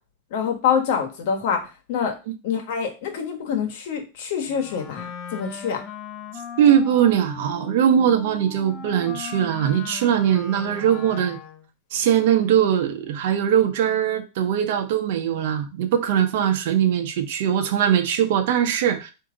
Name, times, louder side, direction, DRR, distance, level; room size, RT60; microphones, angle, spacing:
voice 1, 0.3-1.6 1.9-2.1 2.4-5.8, left 7 dB, 65° left, 4 dB, 1.2 m, -25 dB
Wind instrument woodwind instrument, 4.5-11.7, left 7 dB, 30° left, 0.5 m, -38 dB
voice 2, 6.6-11.4 11.9-19.1, right 9 dB, 65° right, 5 dB, 0.8 m, -21 dB
4.8 x 2.8 x 3.7 m, 0.30 s
supercardioid pair, 140°, 0 cm